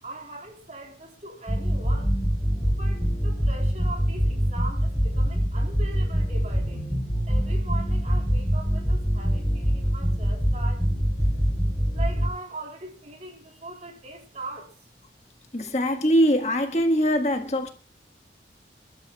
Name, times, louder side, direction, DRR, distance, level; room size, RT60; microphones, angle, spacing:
voice 1, 0.0-2.2 2.6-6.8 7.3-10.9 11.9-14.7, right 2 dB, 40° right, 3.9 m, -40 dB
sound 1, 1.5-12.3, equal, 5° left, 6.7 m, -24 dB
voice 2, 15.5-17.7, equal, 40° left, 1.6 m, -22 dB
28.0 x 12.5 x 2.3 m
head